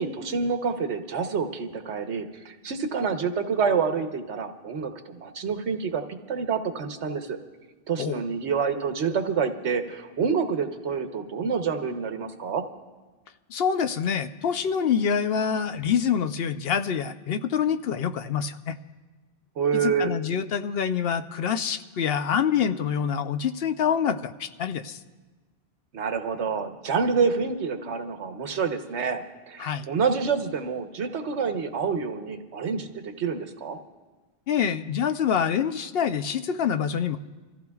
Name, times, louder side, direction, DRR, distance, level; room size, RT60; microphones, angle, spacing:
voice 1, 0.0-7.4 7.9-12.6 19.6-20.1 25.9-33.8, right 5 dB, 85° right, 6 dB, 1.2 m, -27 dB
voice 2, 13.5-18.8 19.8-25.0 29.6-29.9 34.5-37.2, left 7 dB, 65° left, 9 dB, 0.8 m, -26 dB
28.0 x 14.5 x 2.3 m, 1.3 s
omnidirectional pair, 1.1 m